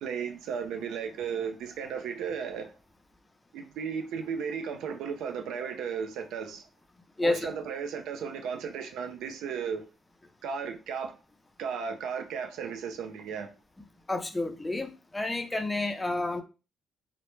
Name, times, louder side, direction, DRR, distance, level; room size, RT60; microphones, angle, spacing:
voice 1, 0.0-2.7 3.5-6.7 7.2-9.9 10.4-11.1 11.6-13.5, right 6 dB, 85° right, 0.4 m, -35 dB
voice 2, 7.2-7.5 14.1-14.9 15.1-16.4, left 2 dB, 15° left, 0.4 m, -29 dB
2.0 x 2.0 x 3.0 m
cardioid pair, 90°, 0 cm